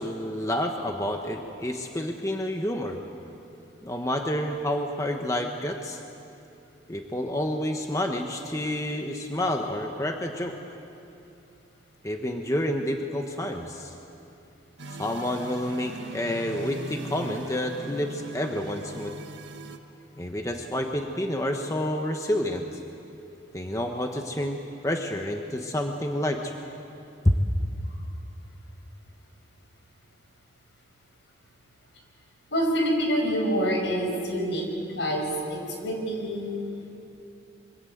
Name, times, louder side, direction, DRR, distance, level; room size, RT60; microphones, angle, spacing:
voice 1, 0.0-3.0 3.8-6.0 6.9-10.6 12.0-13.9 14.9-19.2 20.2-22.7 23.5-26.6 27.2-27.3, left 1 dB, 15° left, 3 dB, 1.1 m, -29 dB
sound 1, 14.8-19.8, right 2 dB, 85° right, 1.5 m, -40 dB
voice 2, 32.5-37.0, equal, 75° left, 2 dB, 5.6 m, -27 dB
26.0 x 24.5 x 8.0 m, 2.7 s
head